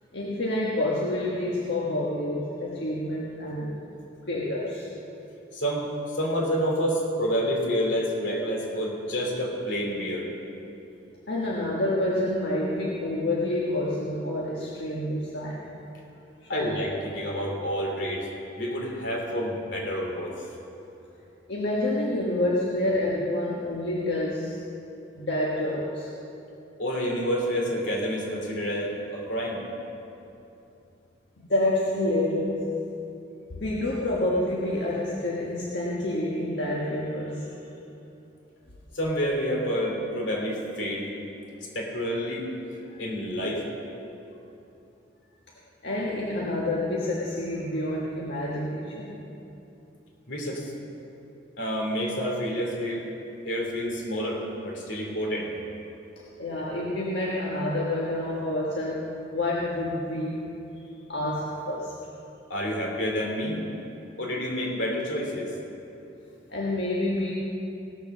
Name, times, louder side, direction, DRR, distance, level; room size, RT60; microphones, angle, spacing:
voice 1, 0.1-3.7 4.3-4.9 11.3-15.6 16.4-16.8 21.5-24.6 25.2-26.1 31.4-32.7 33.5-37.5 45.8-49.1 56.2-60.5 61.1-61.9 66.5-67.3, left 1 dB, 65° left, -5 dB, 1.4 m, -28 dB
voice 2, 5.5-10.3 16.5-18.3 18.6-20.3 26.8-29.6 38.9-41.1 41.7-42.5 43.0-43.6 50.3-50.7 51.6-53.0 53.4-55.5 62.5-63.6 64.2-65.5, equal, 80° left, -1 dB, 3.0 m, -28 dB
17.0 x 6.9 x 6.7 m, 2.9 s
head